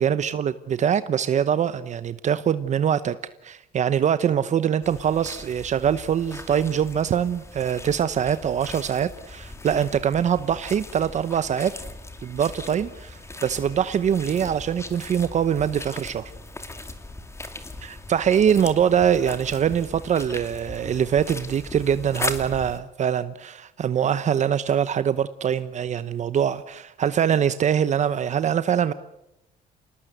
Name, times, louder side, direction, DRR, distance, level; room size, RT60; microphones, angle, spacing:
voice 1, 0.0-3.1 3.4-11.7 12.2-16.3 17.8-28.9, right 8 dB, 45° right, 13 dB, 0.9 m, -23 dB
sound 1, 4.8-22.8, left 2 dB, 15° left, 2.5 m, -38 dB
28.0 x 19.0 x 8.0 m, 0.86 s
cardioid pair, 110°, 17 cm